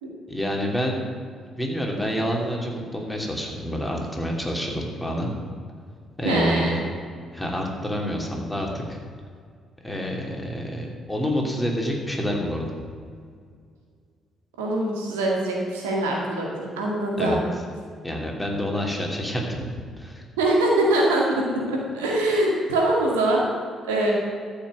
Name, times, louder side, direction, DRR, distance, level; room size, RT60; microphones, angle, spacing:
voice 1, 0.3-1.0 1.6-5.3 6.2-6.8 7.3-9.0 9.8-12.6 17.2-17.4 18.0-20.2, equal, 5° left, 0 dB, 3.0 m, -28 dB
voice 2, 6.2-6.8 14.6-17.4 20.4-21.4 21.7-23.4 23.8-24.1, right 1 dB, 80° right, -2 dB, 2.1 m, -23 dB
13.5 x 5.8 x 7.9 m, 2.1 s
figure-of-eight pair, 45°, 0 cm